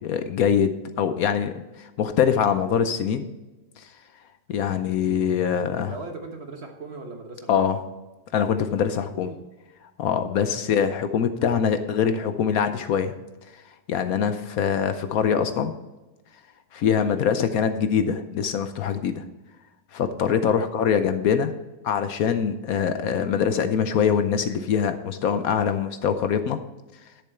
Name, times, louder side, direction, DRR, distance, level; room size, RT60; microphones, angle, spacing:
voice 1, 0.0-3.3 3.8-3.9 4.5-5.9 7.5-7.8 8.3-9.3 10.0-13.1 13.5-13.6 13.9-15.7 16.7-19.2 19.9-21.5 21.8-26.6, left 7 dB, 70° left, 9 dB, 1.1 m, -23 dB
voice 2, 4.5-4.9 5.9-7.7 9.1-9.4 10.5-10.8 16.9-17.2 20.4-20.7, right 3 dB, 45° right, 4 dB, 1.3 m, -40 dB
11.5 x 6.9 x 4.4 m, 1.1 s
omnidirectional pair, 1.7 m